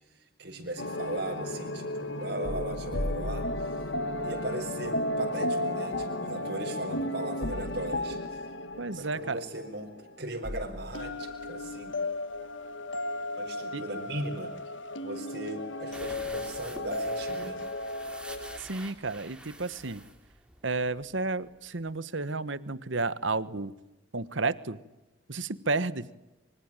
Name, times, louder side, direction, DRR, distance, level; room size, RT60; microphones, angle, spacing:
voice 1, 0.1-3.9 4.2-8.4 8.9-9.9 10.2-11.9 13.4-14.5 15.0-17.6, right 1 dB, 60° right, 0 dB, 5.0 m, -38 dB
sound 1, 0.8-10.1 10.4-18.6, left 1 dB, 70° left, 1.7 m, -34 dB
voice 2, 8.8-9.4 13.7-13.8 18.6-20.0 20.6-23.7 24.1-24.8 25.3-26.1, right 3 dB, 75° right, 16 dB, 1.3 m, -32 dB
sound 2, 15.9-21.2 21.5-21.6 21.9-22.0, right 1 dB, 5° right, 3.1 m, -47 dB
26.0 x 25.0 x 9.0 m, 1.0 s
head